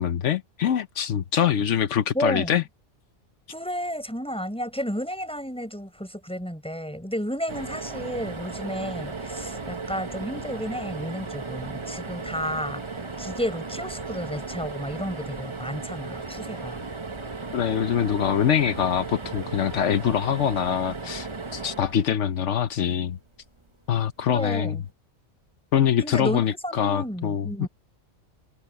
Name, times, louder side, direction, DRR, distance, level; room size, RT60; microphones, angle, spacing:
voice 1, 0.0-2.6 17.5-23.2 23.9-24.8 25.7-27.7, left 9 dB, 80° left, 1.1 m, -24 dB
voice 2, 2.1-2.6 3.5-16.8 24.3-24.8 26.0-27.7, equal, 5° left, 6.8 m, -32 dB
sound 1, 7.5-22.7 24.4-24.6 24.9-25.0, right 3 dB, 25° right, 1.2 m, -36 dB
omnidirectional pair, 1.2 m